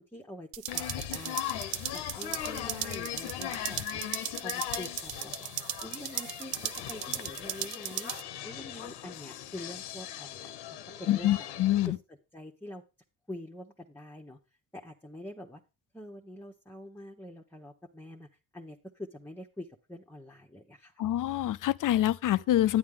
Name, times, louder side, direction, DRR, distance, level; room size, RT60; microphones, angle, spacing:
voice 1, 0.0-1.6 1.9-4.0 4.4-5.3 5.8-8.1 8.4-11.4 11.8-12.8 13.3-14.4 14.7-15.6 15.9-18.3 18.5-20.9, left 1 dB, 5° left, 1.0 m, -45 dB
sound 1, 0.5-8.2, right 11 dB, 65° right, 0.7 m, -37 dB
sound 2, 0.7-11.9, left 12 dB, 85° left, 1.0 m, -39 dB
voice 2, 11.1-12.0 21.0-22.8, left 13 dB, 55° left, 0.5 m, -26 dB
9.5 x 9.5 x 3.7 m
cardioid pair, 80°, 39 cm